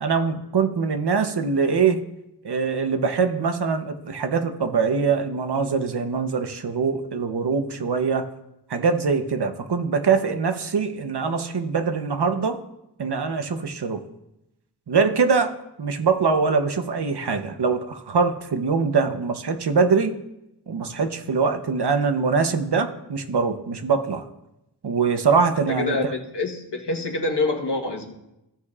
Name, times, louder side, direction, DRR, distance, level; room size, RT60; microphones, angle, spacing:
voice 1, 0.0-2.0 2.4-8.3 8.7-12.6 13.0-14.0 14.9-15.5 15.8-20.2 20.7-24.2 24.8-26.1, right 5 dB, 75° right, 8 dB, 0.9 m, -23 dB
voice 2, 25.7-28.1, left 2 dB, 85° left, 2 dB, 1.3 m, -26 dB
16.0 x 6.6 x 2.4 m, 0.89 s
wide cardioid pair, 65°, 40 cm